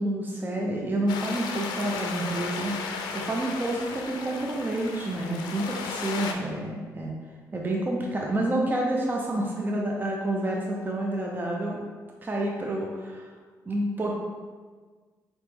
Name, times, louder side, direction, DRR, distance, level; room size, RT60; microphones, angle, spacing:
voice 1, 0.0-7.1 7.5-11.9 12.2-13.3 13.7-14.2, right 1 dB, 25° right, -1 dB, 0.6 m, -29 dB
sound 1, 1.1-6.3, left 5 dB, 85° left, 0.4 m, -35 dB
4.3 x 3.0 x 3.4 m, 1.5 s
supercardioid pair, 70°, 7 cm